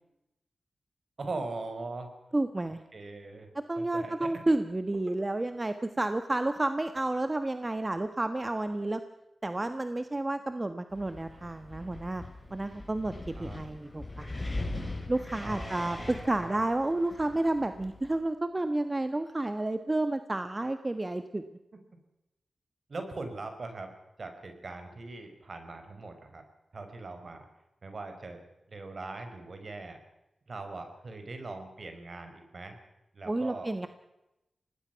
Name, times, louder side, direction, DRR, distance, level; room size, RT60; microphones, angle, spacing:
voice 1, 1.2-2.1 2.9-3.5 3.8-4.3 5.1-5.2 13.3-13.6 15.4-16.6 22.9-23.9 24.2-26.4 26.7-27.5 27.8-28.4 28.7-30.0 30.5-32.8 33.1-33.9, right 3 dB, 60° right, 6 dB, 5.0 m, -41 dB
voice 2, 2.3-2.8 3.7-9.0 9.4-12.2 12.5-13.1 13.4-14.3 15.1-21.4 33.3-33.9, right 2 dB, 30° right, 9 dB, 1.4 m, -30 dB
Wind, 10.9-18.2, left 2 dB, 25° left, 7.1 m, -41 dB
25.0 x 19.0 x 5.9 m, 0.92 s
cardioid pair, 55°, 0 cm